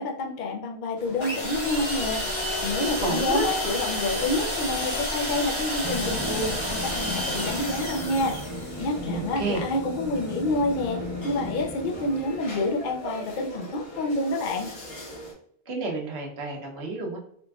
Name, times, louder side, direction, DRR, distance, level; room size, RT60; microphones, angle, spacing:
voice 1, 0.0-14.7, left 2 dB, 55° left, 2 dB, 0.6 m, -28 dB
sound 1, 1.0-15.3, right 1 dB, 75° left, 1.3 m, -41 dB
sound 2, 1.2-8.8, left 1 dB, 30° left, 1.0 m, -30 dB
voice 2, 3.0-3.5 9.0-9.6 15.7-17.2, right 3 dB, 80° right, -1 dB, 1.1 m, -30 dB
sound 3, 5.8-12.8, left 1 dB, 10° left, 0.7 m, -37 dB
3.8 x 2.4 x 2.3 m, 0.68 s
omnidirectional pair, 1.1 m